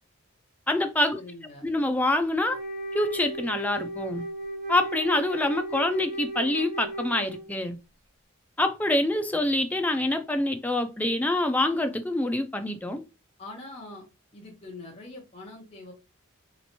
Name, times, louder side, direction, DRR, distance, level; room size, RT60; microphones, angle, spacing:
voice 1, 0.7-1.2 1.6-2.6 2.9-4.2 4.7-7.8 8.6-13.0, left 1 dB, 5° left, 0.3 m, -26 dB
voice 2, 1.2-1.7 13.4-14.0 14.3-15.9, left 2 dB, 25° left, 0.7 m, -43 dB
Wind instrument woodwind instrument, 2.4-7.6, right 1 dB, 35° right, 1.5 m, -36 dB
3.0 x 3.0 x 2.8 m
head